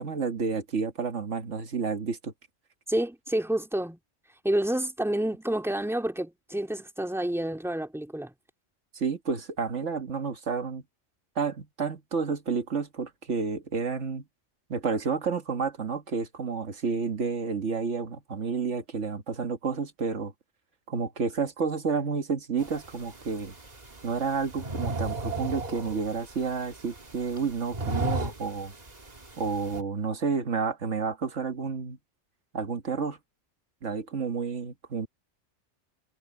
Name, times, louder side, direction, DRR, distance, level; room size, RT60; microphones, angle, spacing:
voice 1, 0.0-2.3 8.9-10.8 11.4-14.3 14.7-20.3 20.9-23.5 24.0-28.7 29.4-32.0 32.5-33.2 33.8-35.1, right 5 dB, 80° right, 1.9 m, -30 dB
voice 2, 2.9-4.0 4.4-8.3, right 1 dB, ahead, 2.8 m, -29 dB
sound 1, 22.6-29.8, right 2 dB, 35° right, 1.9 m, -36 dB
omnidirectional pair, 1.2 m